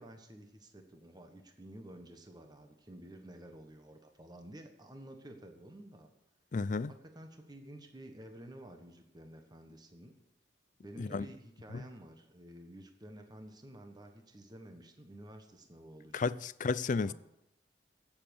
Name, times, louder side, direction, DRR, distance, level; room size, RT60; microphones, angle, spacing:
voice 1, 0.0-6.1 6.9-10.2 10.8-16.3 17.0-17.1, right 1 dB, 25° right, 1.3 m, -51 dB
voice 2, 6.5-6.9 11.0-11.3 11.7-11.8 16.1-17.1, left 4 dB, 45° left, 0.4 m, -32 dB
17.0 x 7.3 x 7.0 m
head